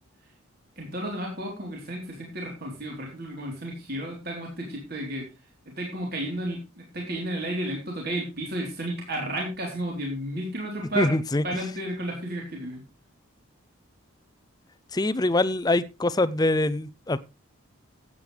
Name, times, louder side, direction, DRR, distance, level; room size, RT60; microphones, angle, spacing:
voice 1, 0.8-5.3 5.8-11.1 11.4-12.8 15.2-15.3, right 1 dB, 45° right, 3.7 m, -32 dB
voice 2, 11.0-11.4 14.9-17.2, left 2 dB, 20° left, 0.5 m, -24 dB
15.5 x 8.7 x 3.3 m
head